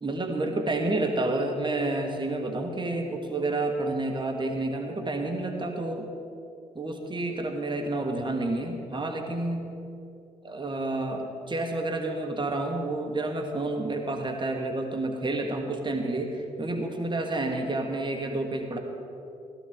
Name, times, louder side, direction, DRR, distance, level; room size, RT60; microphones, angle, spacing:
voice 1, 0.0-6.1 6.8-9.7 10.4-18.8, right 2 dB, 25° right, 3 dB, 1.7 m, -29 dB
16.5 x 12.5 x 3.7 m, 2.7 s
figure-of-eight pair, 40°, 20 cm